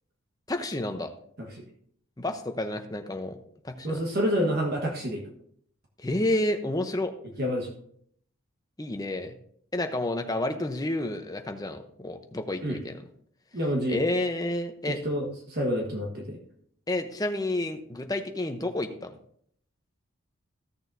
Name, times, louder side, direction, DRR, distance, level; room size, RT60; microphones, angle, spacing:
voice 1, 0.5-1.1 2.2-3.4 3.6-4.0 6.0-7.1 8.8-9.3 9.7-13.0 13.9-15.0 16.9-19.2, left 1 dB, 15° left, 6 dB, 0.7 m, -30 dB
voice 2, 3.8-5.2 7.4-7.7 12.6-12.8 13.5-14.0 14.9-16.4, equal, 45° right, 0 dB, 1.3 m, -28 dB
15.0 x 6.8 x 2.6 m, 0.65 s
head